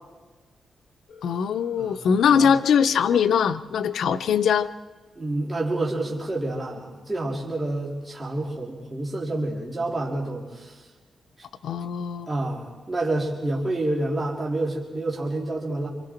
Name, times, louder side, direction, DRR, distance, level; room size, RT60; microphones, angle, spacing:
Telephone, 1.1-3.1, left 4 dB, 55° left, 3.9 m, -50 dB
voice 1, 1.2-4.7 11.6-12.3, left 7 dB, 85° left, 12 dB, 0.8 m, -21 dB
voice 2, 1.8-2.5 5.1-10.8 11.8-11.9 12.3-15.9, right 2 dB, 20° right, -4 dB, 3.3 m, -28 dB
27.5 x 26.0 x 4.5 m, 1.3 s
wide cardioid pair, 130°, 0 cm